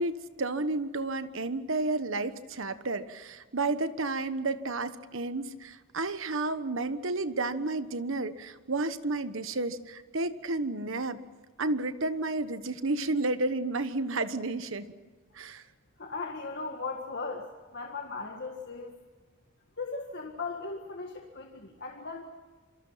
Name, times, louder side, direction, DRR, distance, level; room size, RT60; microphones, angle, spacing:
voice 1, 0.0-11.2 11.6-14.9 15.3-15.6, right 2 dB, 60° right, 12 dB, 1.2 m, -31 dB
voice 2, 16.0-17.5 17.7-19.0 19.8-22.2, left 4 dB, 50° left, 2 dB, 1.8 m, -37 dB
27.0 x 24.5 x 5.8 m, 1.4 s
head